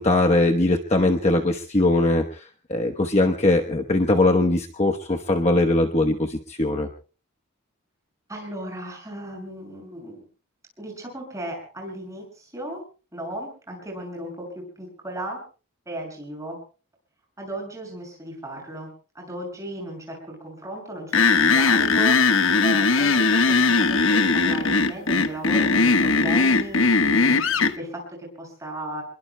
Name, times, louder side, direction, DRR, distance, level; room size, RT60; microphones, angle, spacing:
voice 1, 0.0-6.9, left 2 dB, 30° left, 3 dB, 1.0 m, -21 dB
voice 2, 8.3-10.2 10.8-12.8 13.1-15.4 15.8-16.6 17.4-18.9 19.1-29.0, right 1 dB, 15° right, 1 dB, 6.8 m, -36 dB
sound 1, 21.1-27.7, left 4 dB, 65° left, 1.1 m, -19 dB
28.5 x 21.5 x 2.2 m, 0.36 s
head